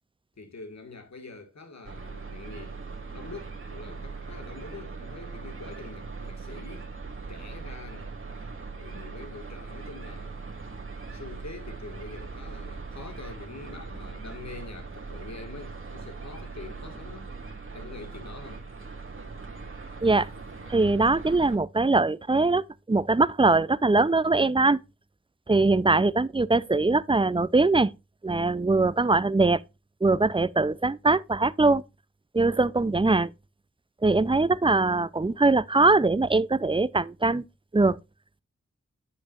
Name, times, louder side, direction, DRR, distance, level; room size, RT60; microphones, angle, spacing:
voice 1, 0.4-2.8 3.1-6.9 7.3-8.1 8.7-10.4 11.1-17.3 17.7-18.6, left 3 dB, 65° left, 2.0 m, -44 dB
sound 1, 1.8-21.6, right 4 dB, 45° right, 2.0 m, -40 dB
voice 2, 20.7-24.8 25.5-27.9 28.2-29.6 30.0-31.8 32.3-33.3 34.0-37.4 37.7-38.0, right 3 dB, 20° right, 0.6 m, -22 dB
10.5 x 6.2 x 2.5 m
cardioid pair, 55°, 29 cm